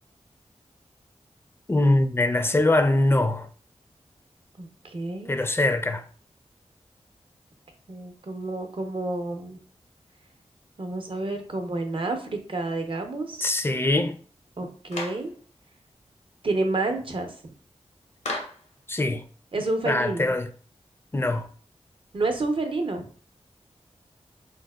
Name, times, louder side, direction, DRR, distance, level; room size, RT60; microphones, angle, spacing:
voice 1, 1.7-3.5 5.3-6.0 13.4-14.2 18.9-19.2 19.8-20.5 21.1-21.5, left 2 dB, 20° left, 0.4 m, -22 dB
voice 2, 4.6-5.4 7.9-9.6 10.8-13.5 14.6-15.3 16.4-17.3 19.5-20.3 22.1-23.0, right 2 dB, 50° right, 0.6 m, -29 dB
Clapping, 14.9-15.3 18.2-18.7, left 2 dB, 80° left, 0.7 m, -33 dB
3.9 x 2.1 x 2.2 m
cardioid pair, 50°, 12 cm